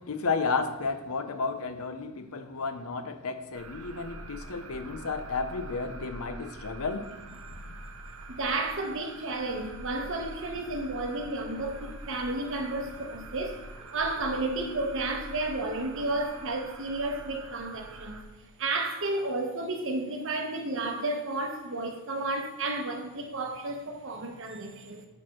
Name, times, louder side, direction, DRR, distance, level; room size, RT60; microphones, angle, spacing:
voice 1, 0.0-7.1, left 4 dB, 75° left, 0.7 m, -32 dB
sound 1, 3.5-18.2, right 2 dB, 80° right, 0.8 m, -45 dB
voice 2, 8.3-13.6 13.9-18.2 18.6-25.1, right 2 dB, 60° right, 1.0 m, -32 dB
7.1 x 4.3 x 6.0 m
head